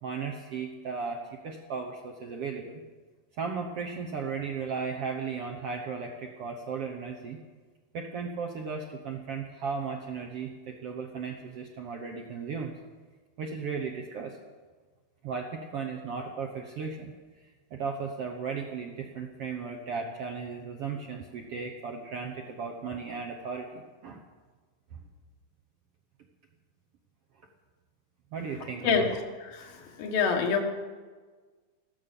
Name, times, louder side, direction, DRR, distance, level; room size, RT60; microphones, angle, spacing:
voice 1, 0.0-2.8 3.3-7.4 7.9-12.7 13.4-14.4 15.2-17.1 17.4-24.2 28.3-29.2, right 5 dB, 70° right, 2 dB, 1.4 m, -36 dB
voice 2, 29.5-30.6, left 6 dB, 90° left, 3 dB, 3.4 m, -26 dB
14.0 x 13.0 x 6.9 m, 1.4 s
omnidirectional pair, 4.0 m